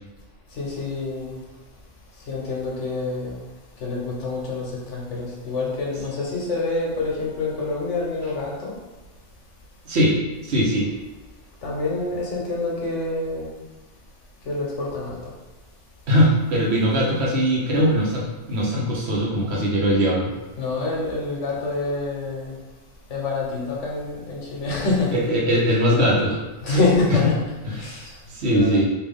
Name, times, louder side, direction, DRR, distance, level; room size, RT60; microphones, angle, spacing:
voice 1, 0.5-1.4 2.3-3.4 3.8-8.8 11.6-13.6 14.4-15.3 20.6-22.6 23.1-25.2 26.6-28.2 28.5-28.8, left 3 dB, 80° left, -3 dB, 1.2 m, -26 dB
voice 2, 9.9-10.2 10.4-10.9 16.1-20.3 25.1-26.8 27.6-28.9, equal, 65° right, -3 dB, 1.0 m, -21 dB
3.3 x 2.4 x 3.5 m, 1.2 s
omnidirectional pair, 1.2 m